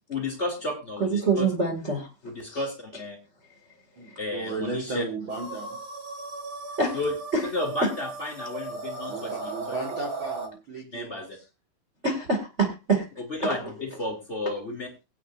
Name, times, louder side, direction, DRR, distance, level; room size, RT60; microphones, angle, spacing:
voice 1, 0.1-1.5 2.2-3.2 4.2-5.0 6.9-7.1 7.4-9.8 10.9-11.4 13.3-15.0, left 2 dB, 20° left, 2 dB, 2.4 m, -32 dB
voice 2, 1.0-2.1 2.5-2.6 6.8-6.9 7.3-7.4 12.0-13.1 13.4-13.7, right 3 dB, 35° right, 1 dB, 1.1 m, -25 dB
voice 3, 4.0-5.8 9.1-11.4, right 3 dB, 70° right, -1 dB, 1.1 m, -35 dB
sound 1, 5.3-10.5, right 3 dB, 50° right, 2.3 m, -37 dB
23.5 x 9.0 x 2.6 m, 0.27 s
omnidirectional pair, 5.3 m